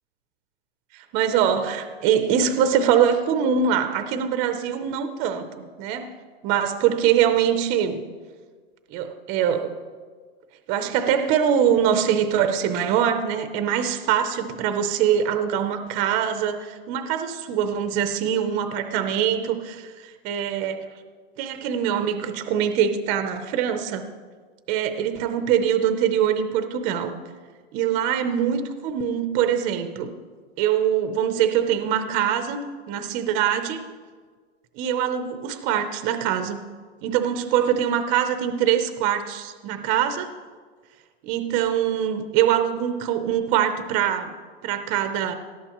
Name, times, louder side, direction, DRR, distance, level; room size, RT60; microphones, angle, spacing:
voice 1, 0.9-6.1 6.4-8.0 8.9-9.7 10.7-20.9 21.4-24.0 24.7-27.1 27.7-30.1 30.6-33.8 34.8-36.6 37.0-40.3 41.2-44.3 44.6-45.3, right 9 dB, 20° right, 8 dB, 0.6 m, -23 dB
18.5 x 13.5 x 3.0 m, 1.5 s
supercardioid pair, 165°, 33 cm